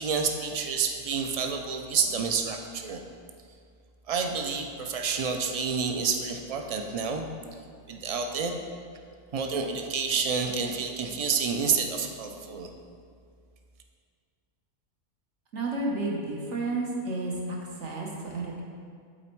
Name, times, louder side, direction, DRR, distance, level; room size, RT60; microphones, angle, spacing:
voice 1, 0.0-3.0 4.1-7.3 7.9-8.6 9.3-12.7, right 5 dB, 55° right, 4 dB, 0.4 m, -29 dB
voice 2, 15.5-18.6, right 2 dB, 70° right, -2 dB, 1.4 m, -31 dB
7.6 x 4.2 x 4.5 m, 2.2 s
omnidirectional pair, 1.2 m